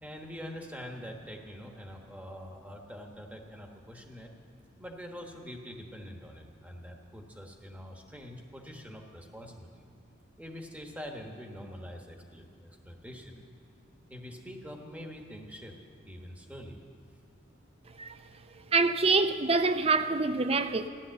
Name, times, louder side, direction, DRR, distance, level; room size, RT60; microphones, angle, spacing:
voice 1, 0.0-4.3 4.8-9.8 10.4-13.4 14.1-15.8 16.1-16.8, equal, 5° right, 1.2 m, -45 dB
voice 2, 18.7-20.9, right 3 dB, 30° right, 0.5 m, -26 dB
15.0 x 11.5 x 7.7 m
head